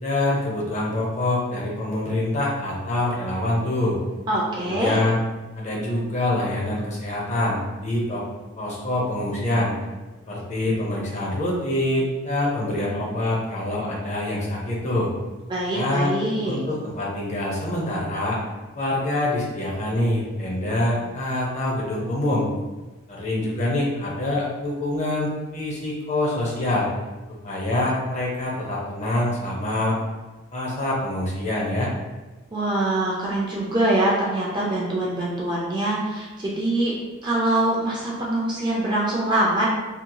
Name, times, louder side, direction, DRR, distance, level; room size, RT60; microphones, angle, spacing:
voice 1, 0.0-4.0 4.6-5.2 5.6-8.2 8.6-9.7 10.3-15.1 15.7-16.1 16.5-18.4 18.7-22.5 23.1-26.9 27.4-30.0 30.5-31.9, left 1 dB, 30° left, -4 dB, 0.6 m, -25 dB
voice 2, 4.3-5.0 15.5-16.6 32.5-36.9 37.2-39.7, right 1 dB, 20° right, -5 dB, 0.4 m, -24 dB
2.8 x 2.7 x 2.2 m, 1.2 s
head